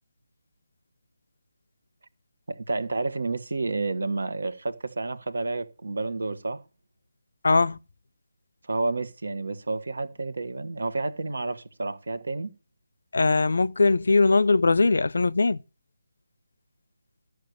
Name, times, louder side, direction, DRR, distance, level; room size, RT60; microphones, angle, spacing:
voice 1, 2.5-6.6 8.6-12.5, right 3 dB, 65° right, 1.5 m, -30 dB
voice 2, 7.4-7.8 13.1-15.6, left 3 dB, 65° left, 0.5 m, -20 dB
13.5 x 6.5 x 6.8 m
figure-of-eight pair, 150°, 0 cm